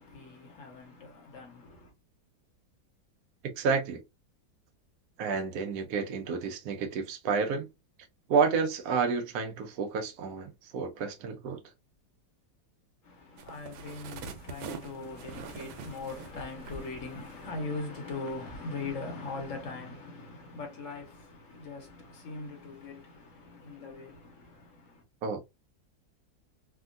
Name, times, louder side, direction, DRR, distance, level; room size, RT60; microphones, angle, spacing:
voice 1, 0.0-1.9 13.0-25.0, left 3 dB, 55° left, 0.9 m, -41 dB
voice 2, 3.4-4.0 5.2-7.7 8.3-11.6 25.2-25.4, right 5 dB, 65° right, 1.0 m, -30 dB
sound 1, 13.4-17.7 18.1-18.3, right 5 dB, 90° right, 1.4 m, -44 dB
3.5 x 2.2 x 2.4 m
omnidirectional pair, 2.1 m